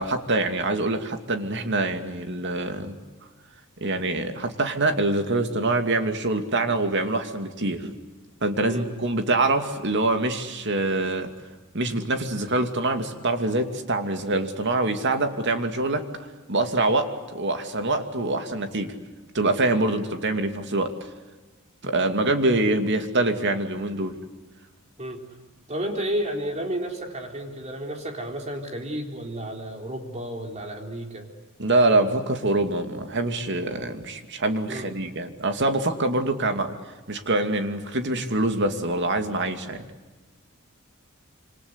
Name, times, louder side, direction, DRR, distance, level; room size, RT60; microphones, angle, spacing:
voice 1, 0.0-2.9 3.8-8.0 8.4-11.3 11.7-16.0 16.5-18.9 19.3-20.9 21.8-24.1 31.6-36.7 37.1-39.9, right 2 dB, 55° right, 6 dB, 2.6 m, -25 dB
voice 2, 25.7-31.3 34.7-34.9 36.3-36.5, right 1 dB, 30° right, 3 dB, 3.9 m, -32 dB
27.0 x 26.0 x 8.2 m, 1.2 s
head